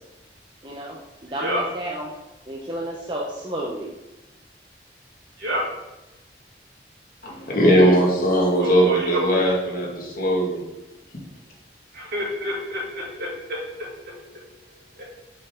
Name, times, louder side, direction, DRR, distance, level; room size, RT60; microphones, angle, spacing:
voice 1, 0.6-2.1 2.5-3.9, right 1 dB, 25° right, -3 dB, 0.8 m, -31 dB
voice 2, 7.2-10.6, equal, 50° left, -3 dB, 2.0 m, -19 dB
voice 3, 8.6-9.2 11.9-14.4 15.0-15.1, equal, 60° right, -5 dB, 2.4 m, -29 dB
7.6 x 5.2 x 3.7 m, 1.0 s
head